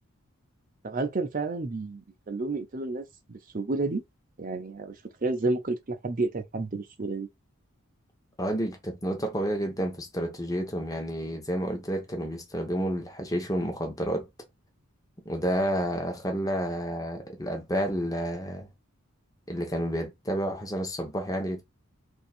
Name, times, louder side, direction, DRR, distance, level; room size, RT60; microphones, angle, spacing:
voice 1, 0.8-4.0 4.4-7.3, right 3 dB, 40° right, 0.6 m, -31 dB
voice 2, 8.4-14.3 15.2-18.7 19.5-21.6, equal, 15° left, 0.8 m, -30 dB
2.8 x 2.6 x 4.3 m
head